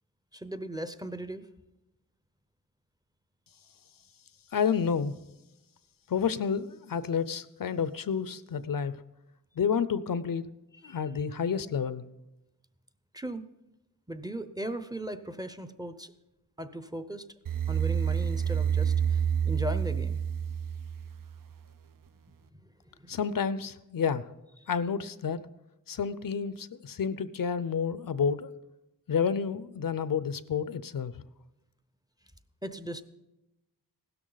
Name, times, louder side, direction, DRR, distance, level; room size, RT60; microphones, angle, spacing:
voice 1, 0.3-1.5 10.8-11.3 13.1-13.4 14.1-16.1 16.6-17.3 17.7-20.2 23.0-23.2 24.6-24.7 32.6-33.0, equal, 10° right, 10 dB, 0.7 m, -38 dB
voice 2, 4.5-5.1 6.1-9.0 9.6-10.5 10.8-12.0 23.1-24.2 24.7-25.4 25.9-28.5 29.1-31.1, left 6 dB, 60° left, 15 dB, 0.6 m, -30 dB
sound 1, 17.5-21.5, right 8 dB, 60° right, 0.6 m, -28 dB
16.0 x 12.5 x 4.0 m, 0.95 s
wide cardioid pair, 120°, 38 cm